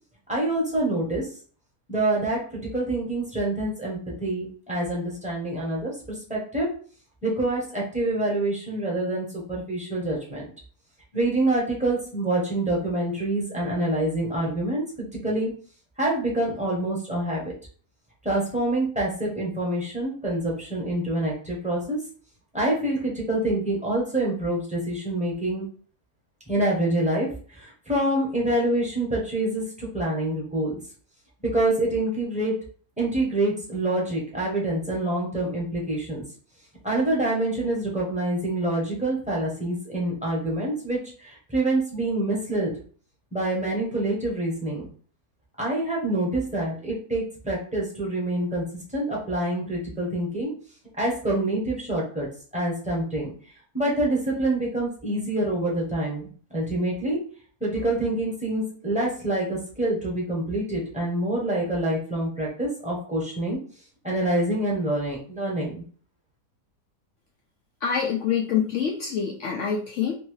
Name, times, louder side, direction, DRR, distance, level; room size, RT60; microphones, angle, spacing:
voice 1, 0.3-1.3 1.9-6.7 7.2-10.4 11.1-15.5 16.0-17.5 18.2-22.0 22.5-25.7 26.5-27.3 27.5-30.8 31.4-32.5 33.0-36.2 36.8-42.7 43.3-44.8 45.6-48.6 48.9-50.5 51.0-52.3 52.5-53.3 53.7-57.2 57.6-63.6 64.0-65.8, right 1 dB, 5° right, -3 dB, 0.8 m, -26 dB
voice 2, 67.8-70.1, left 7 dB, 75° left, -1 dB, 0.7 m, -26 dB
3.0 x 2.7 x 3.1 m, 0.43 s
omnidirectional pair, 1.8 m